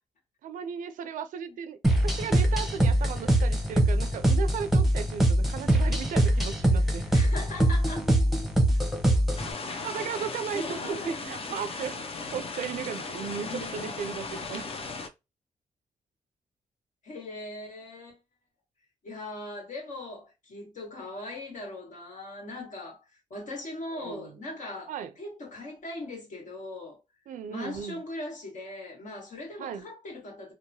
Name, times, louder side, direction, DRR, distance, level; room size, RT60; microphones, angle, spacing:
voice 1, 0.4-7.1 9.8-12.0 12.3-14.6 23.9-24.3 24.9-25.1 27.3-28.0 29.6-29.9, right 7 dB, 90° right, 0.4 m, -36 dB
sound 1, 1.8-9.5, right 1 dB, ahead, 0.7 m, -23 dB
voice 2, 7.1-8.1 10.3-11.6 13.4-14.0 17.0-18.2 19.0-23.0 23.3-27.0 27.5-30.5, left 2 dB, 70° left, 1.4 m, -40 dB
sound 2, 9.4-15.1, left 4 dB, 45° left, 0.5 m, -37 dB
2.9 x 2.1 x 2.7 m
cardioid pair, 75°, 13 cm